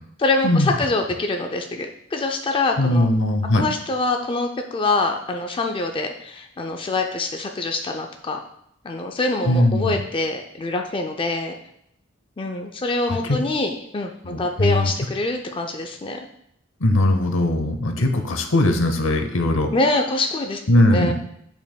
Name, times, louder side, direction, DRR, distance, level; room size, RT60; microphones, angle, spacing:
voice 1, 0.2-3.1 3.5-8.4 8.8-11.5 12.4-16.3 19.7-21.1, left 2 dB, 25° left, 3 dB, 0.4 m, -25 dB
voice 2, 2.8-3.6 9.4-10.0 13.1-13.4 14.2-14.9 16.8-19.7 20.7-21.1, left 1 dB, 70° left, 5 dB, 0.8 m, -19 dB
9.0 x 5.3 x 2.3 m, 0.73 s
head